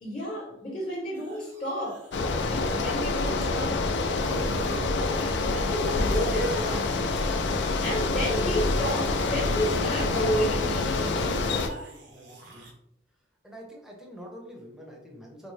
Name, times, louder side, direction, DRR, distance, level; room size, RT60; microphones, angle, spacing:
voice 1, 0.0-2.1 2.5-3.8 4.7-7.1 7.7-11.4, equal, 40° left, -6 dB, 0.9 m, -31 dB
sound 1, 1.2-3.0 4.2-4.8 5.1-12.7, right 2 dB, 85° right, 0.7 m, -44 dB
Bicycle, 2.1-11.7, left 3 dB, 70° left, 0.4 m, -27 dB
voice 2, 12.1-12.7 13.4-15.5, equal, 5° right, -1 dB, 0.7 m, -46 dB
4.0 x 2.1 x 3.1 m, 0.79 s
head